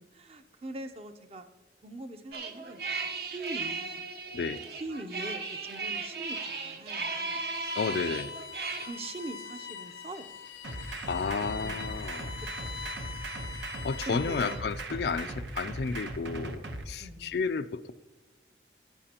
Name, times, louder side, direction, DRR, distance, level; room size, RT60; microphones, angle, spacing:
voice 1, 0.0-1.5 1.8-2.8 3.2-4.1 4.8-7.4 8.8-10.4 11.2-12.0 12.6-13.0 14.0-14.7 17.0-17.4, right 2 dB, 35° right, 8 dB, 0.6 m, -42 dB
sound 1, 2.3-8.9, right 4 dB, 60° right, 0.9 m, -36 dB
Bowed string instrument, 7.5-14.8, left 6 dB, 90° left, 0.9 m, -43 dB
voice 2, 7.8-8.3 11.1-12.4 13.8-17.9, left 5 dB, 65° left, 13 dB, 0.4 m, -32 dB
sound 2, 10.6-16.8, right 2 dB, 80° right, 1.1 m, -38 dB
14.5 x 10.5 x 2.9 m, 1.2 s
head